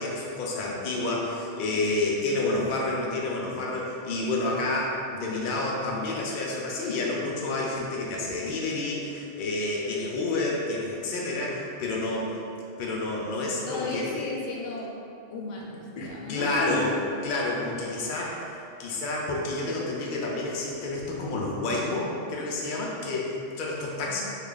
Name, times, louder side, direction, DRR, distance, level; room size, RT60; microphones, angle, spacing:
voice 1, 0.0-12.3 12.8-14.2 16.0-16.9 17.2-24.2, left 2 dB, 60° left, -3 dB, 0.5 m, -29 dB
voice 2, 13.7-14.9 15.3-16.9 24.1-24.2, left 2 dB, 80° left, -2 dB, 0.9 m, -34 dB
3.2 x 2.4 x 3.7 m, 2.5 s
omnidirectional pair, 1.2 m